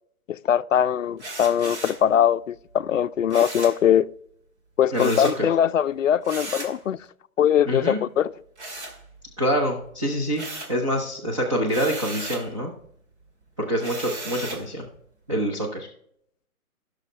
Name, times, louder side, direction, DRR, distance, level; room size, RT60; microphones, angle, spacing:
voice 1, 0.3-4.1 4.8-7.0 7.4-8.3, left 9 dB, 60° left, 0.5 m, -21 dB
sound 1, 1.2-2.1 3.3-3.8 4.9-5.4 6.2-6.8 8.6-9.4 9.8-10.8 11.7-12.5 13.8-14.7, right 2 dB, 50° right, 2.2 m, -36 dB
voice 2, 4.9-5.3 7.7-8.0 9.4-12.7 13.6-14.9 15.3-15.9, equal, 20° right, 0.7 m, -26 dB
15.5 x 6.4 x 3.3 m
hypercardioid pair, 170°, 44 cm